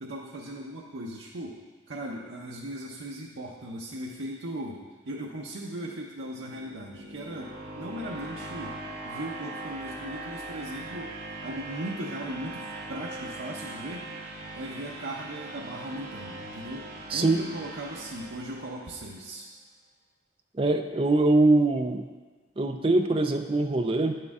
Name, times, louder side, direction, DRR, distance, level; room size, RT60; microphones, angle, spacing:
voice 1, 0.0-1.6 1.9-8.8 9.0-11.1 11.4-14.0 14.5-19.5, right 1 dB, 75° right, -3 dB, 0.8 m, -38 dB
sound 1, 6.2-19.2, right 2 dB, 55° right, 1.5 m, -40 dB
voice 2, 20.6-22.0 22.6-24.2, right 2 dB, 30° right, 5 dB, 0.5 m, -23 dB
10.0 x 6.6 x 3.6 m, 1.3 s
head